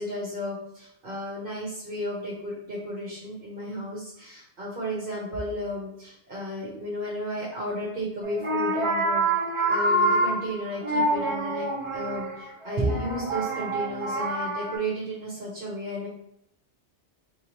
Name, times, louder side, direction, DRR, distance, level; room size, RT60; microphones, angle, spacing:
voice 1, 0.0-9.2 9.7-16.1, equal, 50° right, -6 dB, 1.3 m, -33 dB
sound 1, 8.2-14.7, right 2 dB, 30° right, 1.2 m, -26 dB
4.0 x 3.6 x 3.0 m, 0.73 s
omnidirectional pair, 1.2 m